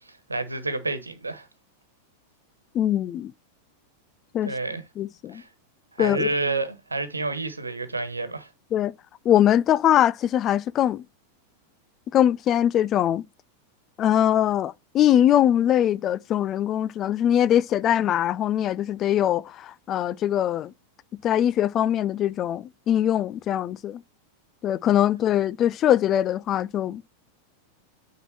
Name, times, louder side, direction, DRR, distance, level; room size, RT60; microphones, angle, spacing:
voice 1, 0.1-1.5 4.4-4.8 5.3-5.5 6.0-8.5, right 3 dB, 80° right, 1.3 m, -29 dB
voice 2, 2.7-3.3 4.3-4.5 5.0-5.4 6.0-6.3 8.7-8.9 9.2-11.0 12.1-13.2 14.0-20.7 21.2-24.0 24.6-27.0, left 11 dB, 30° left, 0.4 m, -22 dB
9.2 x 3.8 x 5.8 m
figure-of-eight pair, 90°, 0 cm